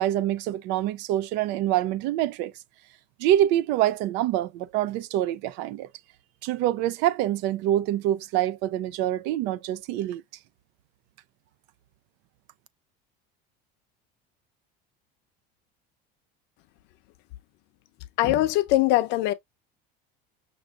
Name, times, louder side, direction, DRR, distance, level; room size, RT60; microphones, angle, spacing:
voice 1, 0.0-2.5 3.2-5.9 6.4-10.2, right 13 dB, 55° right, 0.5 m, -25 dB
voice 2, 18.2-19.3, left 16 dB, 55° left, 0.7 m, -21 dB
6.1 x 2.6 x 2.3 m
cardioid pair, 155°, 21 cm